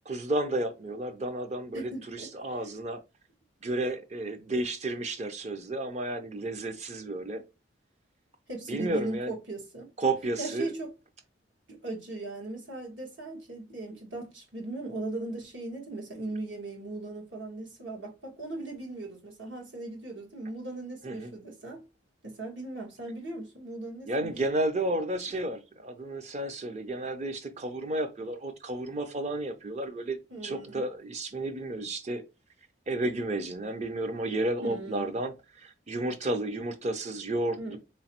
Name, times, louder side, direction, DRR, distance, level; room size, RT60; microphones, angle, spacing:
voice 1, 0.0-3.0 3.6-7.4 8.7-9.3 10.0-10.7 21.0-21.3 24.1-30.2 30.4-32.2 32.9-37.8, right 2 dB, 35° right, 0.5 m, -32 dB
voice 2, 1.7-2.7 8.5-9.9 10.4-10.9 11.7-21.8 22.2-24.3 30.3-30.8 34.6-35.1 37.6-37.8, right 2 dB, 70° right, 1.5 m, -38 dB
4.0 x 3.1 x 2.8 m
head